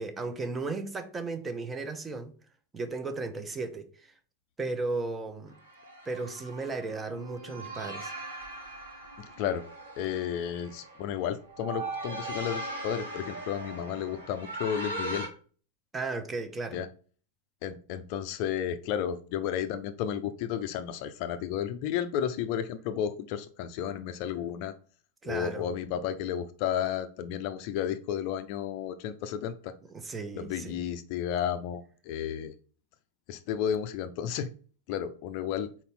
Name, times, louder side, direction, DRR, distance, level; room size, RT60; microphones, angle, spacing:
voice 1, 0.0-2.3 2.7-4.1 4.6-5.6 6.1-8.1 15.9-16.8 25.2-25.7 29.9-30.8, right 3 dB, 15° right, 0.9 m, -35 dB
sound 1, 5.5-15.3, right 2 dB, 75° right, 2.1 m, -40 dB
voice 2, 9.2-9.6 10.0-15.3 16.7-16.9 17.6-24.7 25.2-29.8 30.3-32.5 33.3-34.5 34.9-35.7, left 9 dB, 45° left, 0.5 m, -32 dB
4.3 x 4.2 x 5.5 m
figure-of-eight pair, 90°, 0 cm